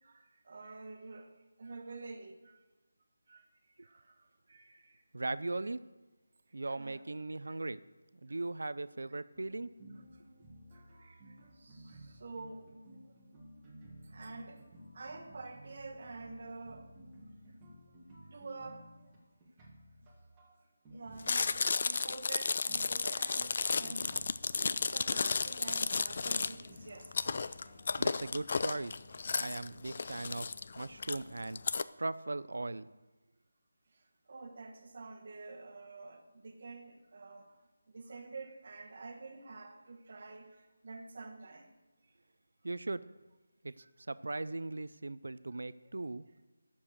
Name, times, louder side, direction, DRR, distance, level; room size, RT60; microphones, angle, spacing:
voice 1, 0.0-1.3 1.6-2.6 3.3-3.4 3.8-5.0 6.6-7.1 7.5-7.6 10.7-12.7 14.0-14.6 14.9-17.1 18.3-18.9 20.9-24.2 24.6-27.3 34.3-37.6 37.9-41.7 43.8-43.9, right 3 dB, 40° right, 1.2 m, -48 dB
voice 2, 5.1-5.8 6.5-7.8 8.2-9.7 28.0-29.0 29.4-30.5 30.8-31.6 32.0-32.9 42.6-43.0 43.6-46.2, right 2 dB, 80° right, 0.5 m, -38 dB
sound 1, 9.3-29.0, equal, 10° right, 1.4 m, -55 dB
Chewing mastication, 21.2-31.8, left 4 dB, 40° left, 0.3 m, -33 dB
10.0 x 7.1 x 6.5 m
figure-of-eight pair, 175°, 0 cm